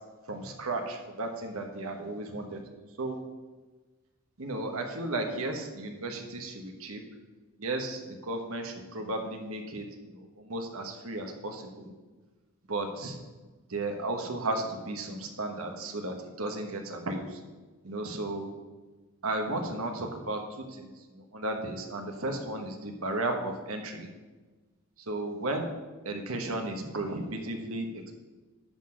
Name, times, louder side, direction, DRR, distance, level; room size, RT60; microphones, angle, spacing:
voice 1, 0.3-2.6 3.0-3.2 4.4-7.0 7.6-11.9 12.7-13.2 13.7-17.4 17.8-18.5 19.2-24.1 25.0-25.7 26.0-28.2, right 2 dB, 85° right, 4 dB, 1.2 m, -34 dB
10.5 x 4.0 x 6.3 m, 1.3 s
head